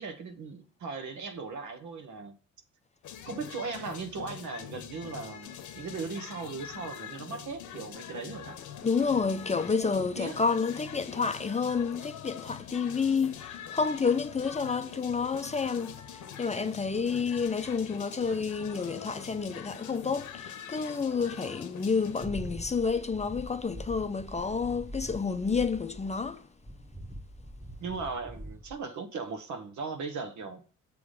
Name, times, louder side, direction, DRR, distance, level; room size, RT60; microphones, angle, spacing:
voice 1, 0.0-2.4 3.2-8.6 10.0-10.4 14.6-15.0 27.8-30.6, right 4 dB, 70° right, 1.3 m, -38 dB
sound 1, 3.0-22.3, left 9 dB, 75° left, 0.9 m, -44 dB
voice 2, 8.8-26.4, left 5 dB, 20° left, 0.5 m, -29 dB
sound 2, 22.2-26.4 26.6-28.8, equal, 10° right, 1.2 m, -43 dB
6.9 x 3.6 x 6.3 m
cardioid pair, 90°, 30 cm